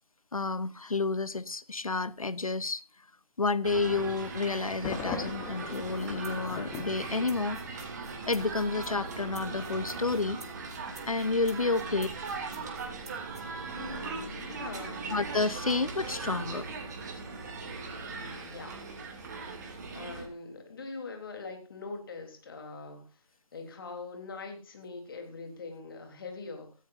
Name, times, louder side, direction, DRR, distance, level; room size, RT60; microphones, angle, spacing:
voice 1, 0.3-2.8 3.4-7.6 8.3-10.4 11.1-12.1 15.1-16.7, left 3 dB, 75° left, 1.0 m, -30 dB
sound 1, 3.6-20.3, right 4 dB, 30° right, 2.8 m, -39 dB
Thunder, 4.8-7.8, left 6 dB, 10° left, 1.0 m, -40 dB
sound 2, 5.7-13.4, right 4 dB, 50° right, 2.3 m, -52 dB
voice 2, 11.5-11.9 13.7-15.1 18.2-18.9 19.9-23.1 23.5-26.7, left 4 dB, 40° left, 3.7 m, -43 dB
17.5 x 14.5 x 2.7 m
figure-of-eight pair, 155°, 18 cm